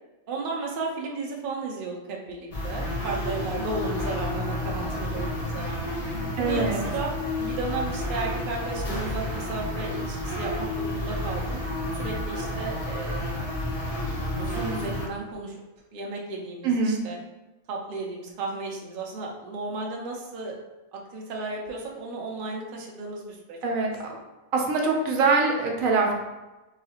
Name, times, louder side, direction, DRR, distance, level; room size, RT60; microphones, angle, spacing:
voice 1, 0.3-6.0 6.4-11.6 11.9-13.3 14.4-15.6 15.9-17.2 17.7-20.6 20.9-23.8, right 3 dB, 55° right, -1 dB, 0.7 m, -34 dB
sound 1, 2.5-15.1, left 1 dB, 40° left, 0.5 m, -30 dB
voice 2, 6.4-6.8 16.6-17.0 23.6-23.9 24.5-26.1, right 4 dB, 80° right, 1 dB, 1.1 m, -23 dB
4.0 x 2.8 x 2.8 m, 1.1 s
omnidirectional pair, 1.4 m